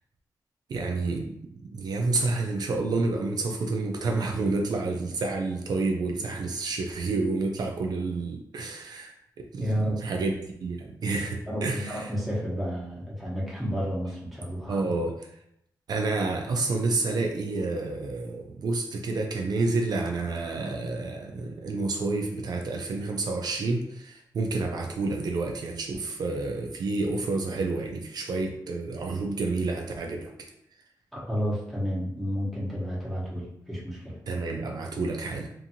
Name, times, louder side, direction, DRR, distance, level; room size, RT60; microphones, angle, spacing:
voice 1, 0.7-9.7 10.0-12.1 14.7-15.3 15.9-30.3 34.3-35.5, right 3 dB, 65° right, 2 dB, 0.3 m, -29 dB
voice 2, 9.6-10.0 11.5-14.8 31.1-34.1, equal, ahead, -7 dB, 0.9 m, -31 dB
2.6 x 2.5 x 2.7 m, 0.76 s
wide cardioid pair, 125°, 7 cm